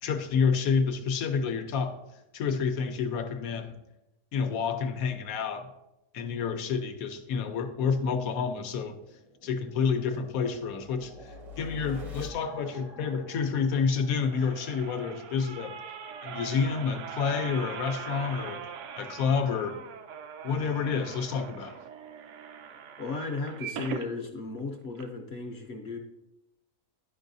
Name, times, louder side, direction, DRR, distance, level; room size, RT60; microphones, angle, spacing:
voice 1, 0.0-2.0 2.3-3.8 4.3-5.7 6.1-9.0 9.4-15.8 16.2-18.6 19.0-19.8 20.4-21.8, left 5 dB, 75° left, 7 dB, 1.1 m, -29 dB
sound 1, 8.5-15.1, left 3 dB, 30° right, 0.6 m, -47 dB
sound 2, 13.9-24.1 24.6-24.7 24.9-25.0, right 7 dB, 65° right, 0.8 m, -41 dB
voice 2, 23.0-26.0, left 3 dB, 55° left, 2 dB, 0.8 m, -35 dB
11.0 x 5.3 x 2.6 m, 0.91 s
omnidirectional pair, 1.6 m